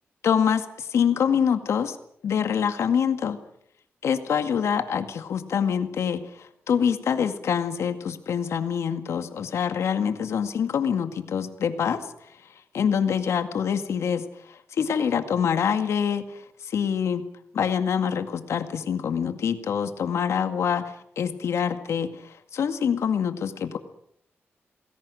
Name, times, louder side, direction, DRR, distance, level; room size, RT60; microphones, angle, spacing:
voice 1, 0.2-2.0 2.2-3.4 4.0-12.0 12.7-17.2 17.5-23.8, left 7 dB, 90° left, 9 dB, 2.1 m, -25 dB
29.0 x 20.5 x 6.4 m, 0.71 s
wide cardioid pair, 115°, 5 cm